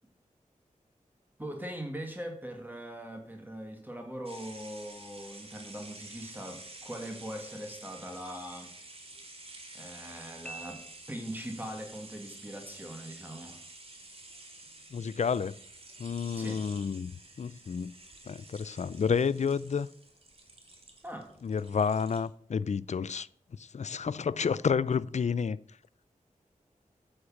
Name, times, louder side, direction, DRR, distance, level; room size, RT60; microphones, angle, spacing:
voice 1, 1.4-8.7 9.7-10.8 11.1-13.6 16.3-16.6 21.0-21.3, right 1 dB, 15° right, 2.0 m, -41 dB
sound 1, 4.3-22.3, right 2 dB, 45° right, 2.4 m, -50 dB
Piano, 10.4-11.6, right 2 dB, 5° left, 0.8 m, -46 dB
voice 2, 14.9-15.5 16.0-17.1 17.4-17.9 18.3-19.9 21.4-23.3 23.6-25.6, left 6 dB, 55° left, 0.4 m, -30 dB
9.7 x 6.5 x 7.1 m
wide cardioid pair, 75°, 14 cm